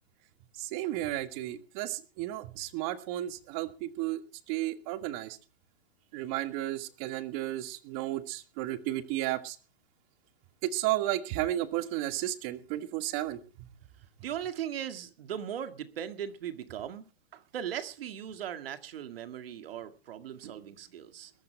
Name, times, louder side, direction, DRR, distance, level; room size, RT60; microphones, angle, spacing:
voice 1, 0.6-4.2 4.5-5.4 6.1-9.6 10.6-13.4, right 15 dB, 35° right, 1.6 m, -33 dB
voice 2, 14.2-21.3, right 9 dB, 70° right, 2.1 m, -39 dB
21.0 x 13.5 x 3.4 m
hypercardioid pair, 145°, 31 cm